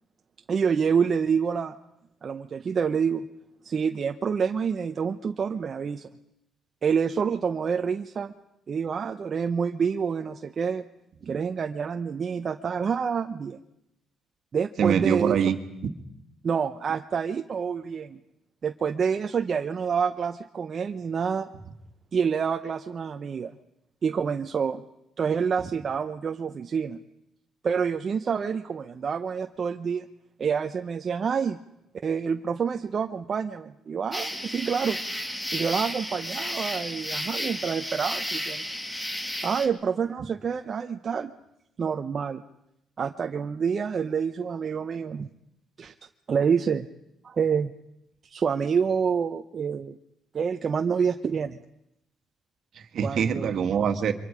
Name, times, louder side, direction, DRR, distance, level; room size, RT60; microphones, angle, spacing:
voice 1, 0.5-1.8 2.2-3.3 3.6-6.1 6.8-8.3 8.7-10.8 11.2-13.6 14.5-15.4 16.4-18.2 18.6-21.5 22.1-23.5 24.0-24.8 25.2-27.0 27.6-30.1 30.4-31.6 32.0-35.0 35.5-38.6 39.4-41.3 41.8-42.4 43.0-45.3 45.8-45.9 46.3-46.9 47.2-47.7 48.3-50.0 50.3-51.6 53.0-53.6, right 6 dB, 45° right, 5 dB, 0.9 m, -27 dB
voice 2, 14.8-15.9 52.8-54.1, right 7 dB, 65° right, 7 dB, 1.8 m, -24 dB
sound 1, 34.1-39.7, left 1 dB, 15° left, 2.5 m, -33 dB
28.0 x 24.0 x 5.1 m, 0.83 s
cardioid pair, 90°, 0 cm